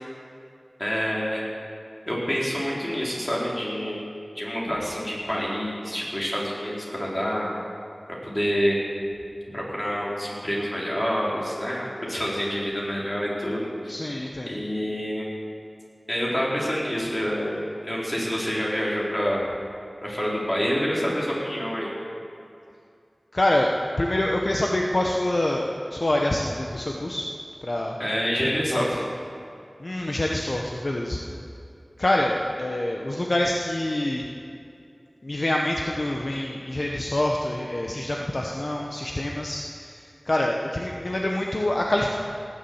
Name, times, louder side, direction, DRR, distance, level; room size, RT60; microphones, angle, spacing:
voice 1, 0.8-1.4 2.1-4.0 4.3-7.5 8.2-8.8 9.5-13.9 14.5-15.3 16.1-19.4 20.0-21.9 28.0-29.1 37.9-38.0, equal, 25° left, -5 dB, 4.4 m, -27 dB
voice 2, 13.9-14.5 23.3-23.7 24.0-27.3 27.6-27.9 28.7-28.8 29.8-31.2 32.0-34.3 35.2-42.1, left 1 dB, 60° left, 0 dB, 1.0 m, -26 dB
18.0 x 7.3 x 8.1 m, 2.5 s
wide cardioid pair, 45°, 0 cm